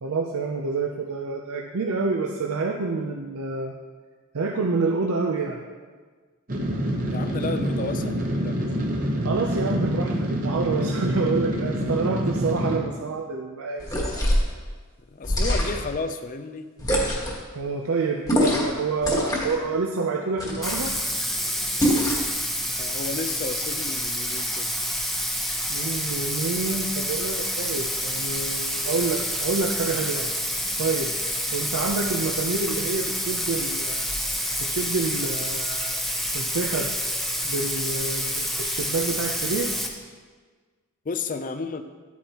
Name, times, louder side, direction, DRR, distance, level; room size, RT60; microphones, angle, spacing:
voice 1, 0.0-3.7 4.3-5.6 9.2-13.9 17.5-20.9 25.7-30.3 30.8-31.1 31.5-34.1 34.6-36.0 36.3-36.9 37.4-39.7, right 3 dB, 75° right, 1 dB, 0.6 m, -28 dB
sound 1, 6.5-12.8, equal, 40° right, 1.0 m, -26 dB
voice 2, 7.1-8.6 15.1-16.7 22.8-24.7 41.1-41.8, left 4 dB, 35° left, 9 dB, 0.5 m, -32 dB
sound 2, 13.8-14.5 15.2-15.9 16.8-17.4 18.3-18.7 19.0-19.6 20.4-21.0 21.8-22.3, equal, 15° left, 1.3 m, -24 dB
Bathtub (filling or washing), 20.6-39.9, equal, ahead, 0.7 m, -28 dB
11.0 x 8.5 x 2.9 m, 1.5 s
head